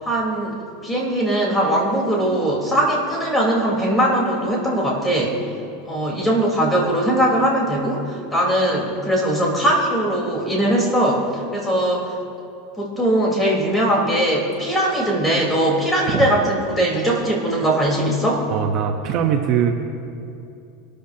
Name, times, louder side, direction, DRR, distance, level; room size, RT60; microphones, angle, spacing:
voice 1, 0.0-0.6 0.8-5.4 5.8-12.2 12.8-18.4, right 1 dB, 10° left, -3 dB, 4.2 m, -20 dB
voice 2, 18.5-19.7, right 8 dB, 45° right, 3 dB, 1.1 m, -21 dB
24.5 x 13.5 x 2.9 m, 2.7 s
supercardioid pair, 135°, 0 cm